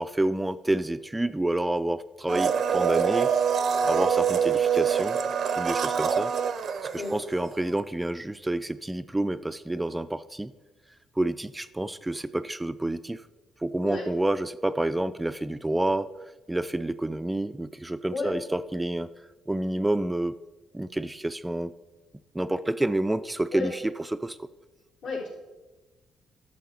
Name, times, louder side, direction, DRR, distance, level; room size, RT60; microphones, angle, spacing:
voice 1, 0.0-3.3 3.8-5.2 5.6-6.3 6.9-10.5 11.2-13.2 13.6-16.1 16.5-19.1 19.5-20.3 20.7-21.7 22.3-24.5, right 1 dB, 10° right, 13 dB, 0.3 m, -28 dB
Domestic sounds home sounds, 2.3-7.5 7.8-7.9, right 7 dB, 60° right, 0.5 m, -25 dB
voice 2, 7.0-7.1 13.8-14.0 18.1-18.3 23.5-23.7 25.0-25.3, left 4 dB, 80° left, -5 dB, 3.4 m, -32 dB
10.5 x 6.5 x 4.2 m, 1.1 s
cardioid pair, 90°, 0 cm